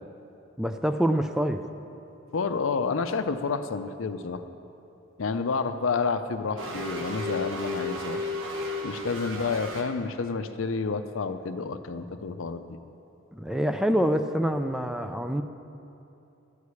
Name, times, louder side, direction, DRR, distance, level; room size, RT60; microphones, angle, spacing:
voice 1, 0.6-1.6 13.3-15.4, equal, 5° right, 8 dB, 0.3 m, -26 dB
voice 2, 2.3-4.4 5.2-8.2 8.8-12.7, left 4 dB, 70° left, 10 dB, 0.5 m, -29 dB
sound 1, 6.6-9.8, left 2 dB, 70° right, 1.4 m, -33 dB
13.0 x 4.8 x 8.3 m, 2.8 s
head